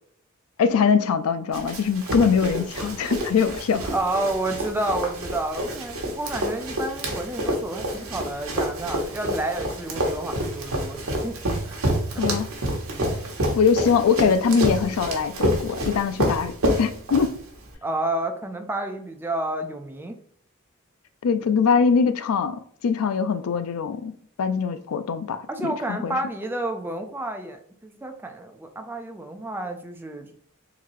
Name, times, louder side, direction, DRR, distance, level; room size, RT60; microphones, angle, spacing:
voice 1, 0.6-3.9 12.2-12.5 13.5-17.4 21.2-24.1 24.4-26.2, left 6 dB, 85° left, 0.4 m, -22 dB
Run, 1.5-17.7, equal, 80° right, 1.0 m, -28 dB
voice 2, 3.9-11.4 11.6-11.9 12.1-12.3 12.9-13.2 17.8-20.2 25.5-30.3, right 1 dB, 10° right, 0.4 m, -30 dB
3.8 x 2.7 x 3.0 m
head